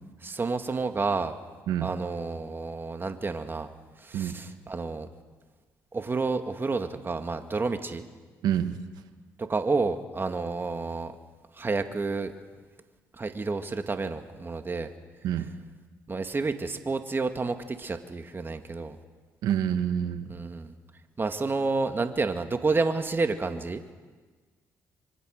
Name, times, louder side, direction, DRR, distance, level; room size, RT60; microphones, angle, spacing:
voice 1, 0.2-1.4 1.8-3.7 4.0-5.1 5.9-8.0 9.4-11.1 11.6-12.3 13.2-14.9 16.1-19.0 20.3-20.7 21.2-23.8, right 3 dB, 30° right, 7 dB, 2.1 m, -30 dB
voice 2, 8.4-8.8 15.2-15.5 19.4-20.3, right 10 dB, 80° right, 9 dB, 1.7 m, -27 dB
26.0 x 23.5 x 6.6 m, 1.4 s
supercardioid pair, 60°, 7 cm